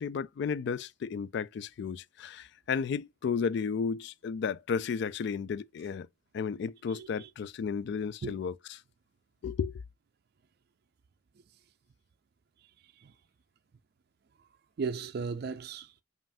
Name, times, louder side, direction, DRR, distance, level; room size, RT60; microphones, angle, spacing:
voice 1, 0.0-6.1 6.3-8.8 9.4-9.7, left 6 dB, 60° left, 0.3 m, -33 dB
voice 2, 6.9-7.3 8.2-8.4 13.0-13.1 14.8-16.0, right 5 dB, 55° right, 0.4 m, -36 dB
5.4 x 2.5 x 2.5 m
head